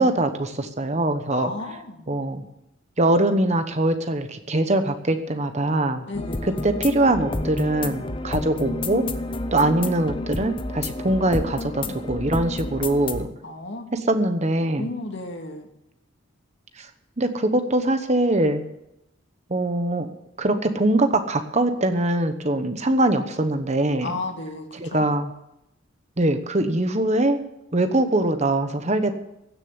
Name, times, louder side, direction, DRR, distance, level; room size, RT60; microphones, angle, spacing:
voice 1, 0.0-1.5 2.1-2.4 3.0-6.1 6.4-9.1 9.5-13.3 13.9-14.9 16.8-16.9 17.2-18.7 19.5-20.1 20.4-24.1 24.7-25.3 26.2-27.4 27.7-29.1, right 1 dB, 35° right, 9 dB, 1.0 m, -22 dB
voice 2, 1.3-2.1 6.1-6.7 13.4-13.9 14.8-15.7 24.0-25.1, left 2 dB, 60° left, 3 dB, 2.2 m, -33 dB
sound 1, 6.1-13.2, left 2 dB, 25° left, 0.8 m, -30 dB
16.0 x 6.8 x 9.6 m, 0.86 s
head